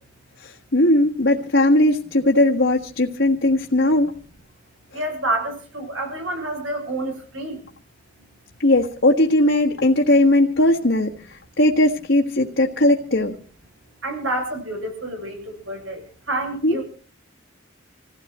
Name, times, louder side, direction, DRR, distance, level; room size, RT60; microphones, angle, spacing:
voice 1, 0.4-4.1 8.6-13.4 16.6-16.8, left 1 dB, 65° left, 0 dB, 1.5 m, -18 dB
voice 2, 4.9-7.6 14.0-16.0 16.3-16.8, right 1 dB, 80° right, 3 dB, 7.1 m, -28 dB
27.0 x 16.5 x 3.0 m, 0.42 s
head